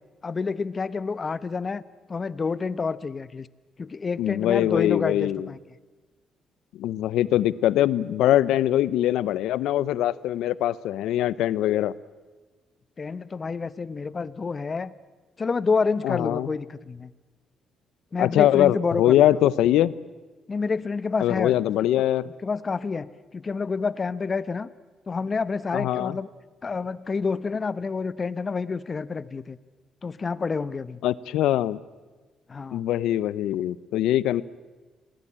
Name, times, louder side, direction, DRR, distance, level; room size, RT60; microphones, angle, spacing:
voice 1, 0.2-1.8 2.1-3.5 3.8-5.6 13.0-14.9 15.4-17.1 18.1-19.2 20.5-21.6 22.4-24.7 25.1-26.3 26.6-29.6 30.0-31.0 32.5-32.8, left 4 dB, 35° left, 17 dB, 1.0 m, -28 dB
voice 2, 4.2-5.5 6.8-11.9 16.0-16.5 18.2-19.9 21.2-22.3 25.7-26.2 31.0-31.8 32.7-34.4, left 13 dB, 90° left, 19 dB, 0.7 m, -22 dB
27.0 x 19.5 x 8.8 m, 1.3 s
cardioid pair, 90°, 0 cm